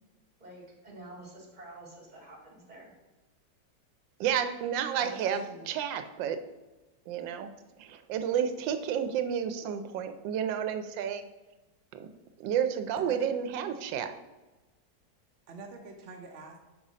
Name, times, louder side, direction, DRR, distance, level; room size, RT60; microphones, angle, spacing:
voice 1, 0.4-2.9, right 1 dB, 25° right, -2 dB, 1.9 m, -48 dB
voice 2, 4.2-6.4 7.1-7.5 7.8-11.3 11.9-12.1 12.4-14.2, right 8 dB, 90° right, 9 dB, 1.3 m, -31 dB
voice 3, 4.9-5.7 13.0-13.4 15.5-16.6, right 3 dB, 55° right, 3 dB, 0.7 m, -46 dB
5.5 x 5.4 x 4.9 m, 1.1 s
omnidirectional pair, 2.0 m